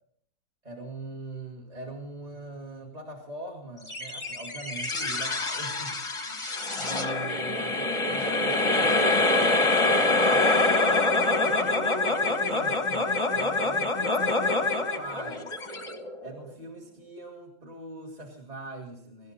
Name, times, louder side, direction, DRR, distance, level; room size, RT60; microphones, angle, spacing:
voice 1, 0.6-6.0 6.2-11.1 11.4-15.5 16.2-19.3, right 2 dB, 25° right, -1 dB, 1.9 m, -42 dB
sound 1, 3.9-16.5, left 2 dB, 20° left, 1.1 m, -25 dB
23.5 x 12.0 x 4.2 m, 0.67 s
omnidirectional pair, 1.7 m